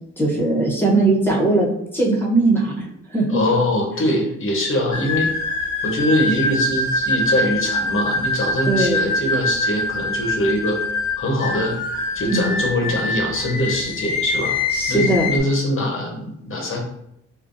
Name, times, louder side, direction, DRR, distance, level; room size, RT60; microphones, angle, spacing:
voice 1, 0.2-1.7 1.9-3.3 8.7-9.0 12.3-12.5 14.7-15.3, right 2 dB, 5° left, -4 dB, 0.9 m, -19 dB
voice 2, 3.3-5.3 5.8-10.8 11.2-11.8 12.1-14.6 14.9-16.8, left 1 dB, 45° left, 1 dB, 0.9 m, -22 dB
sound 1, 4.9-15.4, left 2 dB, 70° left, 1.0 m, -24 dB
3.7 x 2.2 x 2.6 m, 0.77 s
cardioid pair, 90°, 30 cm